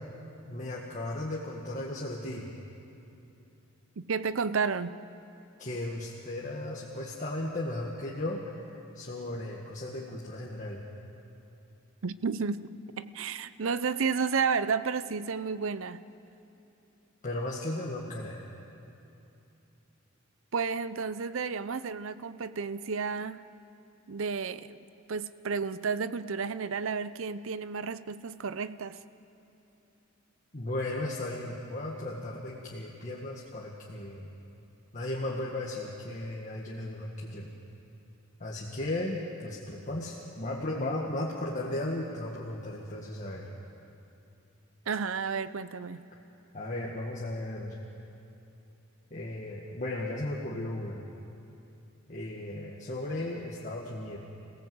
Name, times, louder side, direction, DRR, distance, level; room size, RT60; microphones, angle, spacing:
voice 1, 0.5-2.5 5.6-10.8 17.2-18.4 30.5-34.3 34.9-37.5 38.4-43.5 46.5-47.8 49.1-51.0 52.1-54.2, left 1 dB, 40° left, -3 dB, 1.8 m, -35 dB
voice 2, 4.0-5.0 12.0-12.7 13.0-16.0 20.5-23.4 24.1-24.8 25.1-29.0 44.9-46.0, right 5 dB, 70° right, 14 dB, 0.6 m, -31 dB
27.0 x 16.5 x 8.0 m, 2.9 s
head